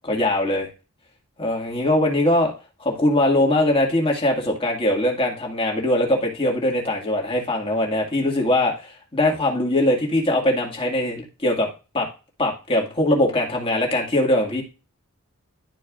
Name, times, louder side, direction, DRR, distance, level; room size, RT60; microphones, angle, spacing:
voice 1, 0.0-0.7 1.4-2.5 2.8-11.7 11.9-12.1 12.4-14.6, left 1 dB, 25° left, 0 dB, 1.9 m, -21 dB
12.0 x 4.6 x 2.4 m, 0.30 s
head